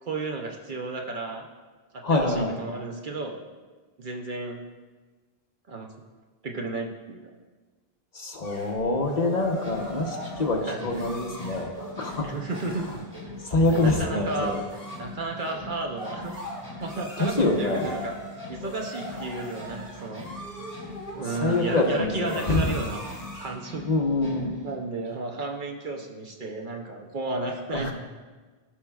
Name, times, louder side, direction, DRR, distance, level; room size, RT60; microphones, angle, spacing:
voice 1, 0.0-1.5 1.9-3.4 4.0-4.6 5.7-5.9 6.4-7.3 10.7-10.9 12.2-12.9 13.7-14.6 15.0-16.3 16.8-18.2 18.5-20.3 21.1-23.0 23.4-23.9 24.6-27.9, right 2 dB, 55° right, 2 dB, 0.8 m, -33 dB
voice 2, 2.0-2.6 8.1-11.7 11.9-12.3 13.4-14.6 17.2-17.9 21.4-22.6 23.8-24.6 27.7-27.9, left 2 dB, 45° left, 0 dB, 1.0 m, -25 dB
sound 1, 8.4-23.6, equal, 35° right, 1.6 m, -41 dB
sound 2, 9.5-24.8, left 1 dB, 5° right, 2.0 m, -43 dB
15.5 x 5.6 x 2.3 m, 1.3 s
omnidirectional pair, 1.0 m